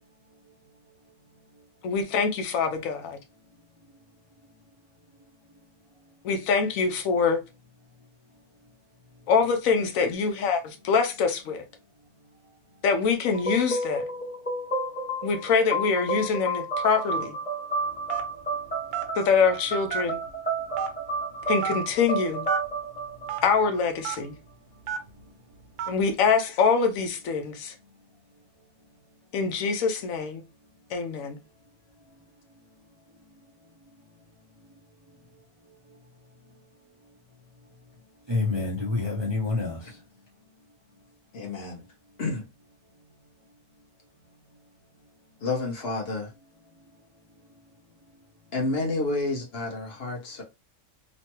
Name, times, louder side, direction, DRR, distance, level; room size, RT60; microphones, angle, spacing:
voice 1, 1.8-3.2 6.2-7.4 9.3-11.6 12.8-14.0 15.2-17.3 19.2-20.2 21.5-22.5 23.4-24.3 25.9-27.7 29.3-30.4 30.9-31.4, left 5 dB, 90° left, 1.1 m, -24 dB
sound 1, 13.3-24.0, right 2 dB, 10° left, 0.8 m, -31 dB
Telephone, 18.1-18.4 18.9-19.1 19.9-20.3 20.8-20.9 21.6-21.8 22.4-22.6 23.3-23.4 24.0-24.2 24.9-25.1 25.8-26.0, right 8 dB, 75° right, 1.0 m, -30 dB
voice 2, 38.3-40.0, left 3 dB, 30° right, 0.5 m, -28 dB
voice 3, 41.3-41.8 42.2-42.4 45.4-46.3 48.5-50.4, left 3 dB, 55° left, 1.1 m, -29 dB
3.0 x 2.2 x 2.9 m
omnidirectional pair, 1.4 m